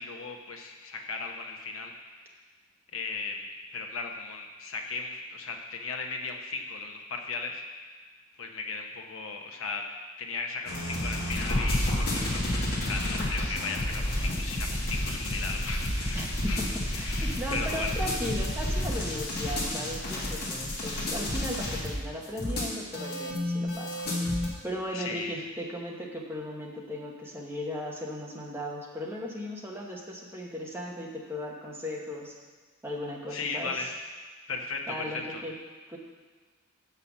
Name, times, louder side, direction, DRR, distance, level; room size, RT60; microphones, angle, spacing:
voice 1, 0.0-1.9 2.9-3.5 3.7-7.6 8.4-9.9 10.2-12.4 12.7-16.6 16.9-17.9 24.9-25.5 33.3-33.9 34.5-35.4, left 4 dB, 65° left, 2 dB, 1.0 m, -36 dB
sound 1, 10.7-24.5, left 1 dB, 45° left, 1.7 m, -30 dB
voice 2, 16.1-16.7 17.0-24.1 24.6-32.3 32.8-33.9 34.9-35.5 35.9-36.0, equal, 10° right, -2 dB, 1.1 m, -37 dB
6.6 x 5.7 x 7.1 m, 1.4 s
head